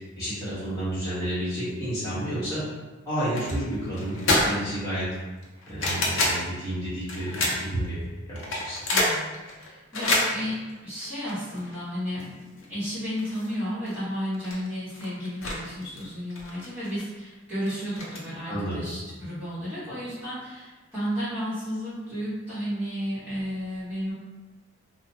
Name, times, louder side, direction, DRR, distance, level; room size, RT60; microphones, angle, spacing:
voice 1, 0.2-2.7 3.0-5.1 5.7-8.0 8.3-8.8 18.5-18.9, right 1 dB, 15° left, -12 dB, 1.2 m, -30 dB
sound 1, 3.3-3.6 3.9-4.8 5.1-6.4 7.1-7.9 8.4-11.8 12.2-12.3 12.6-12.7 13.2-13.6 13.9-14.0 14.3-15.6 15.8-17.0 17.7-18.2, left 2 dB, 85° left, 0.6 m, -27 dB
voice 2, 8.9-12.4 12.7-24.1, equal, 10° right, -12 dB, 1.4 m, -33 dB
3.0 x 2.1 x 2.7 m, 1.2 s
head